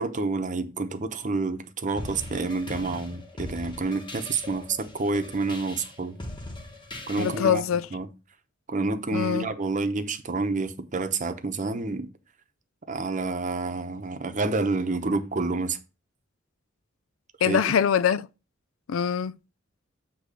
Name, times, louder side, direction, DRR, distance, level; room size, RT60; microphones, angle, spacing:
voice 1, 0.0-6.2 7.1-7.6 7.9-8.1 8.7-12.1 12.9-15.8 17.5-17.7, right 3 dB, 40° right, 0.8 m, -28 dB
sound 1, 2.0-7.6, left 2 dB, 25° left, 1.4 m, -40 dB
voice 2, 7.2-7.9 9.1-9.5 17.4-18.3 18.9-19.4, left 8 dB, 85° left, 0.4 m, -23 dB
8.3 x 3.1 x 6.1 m
head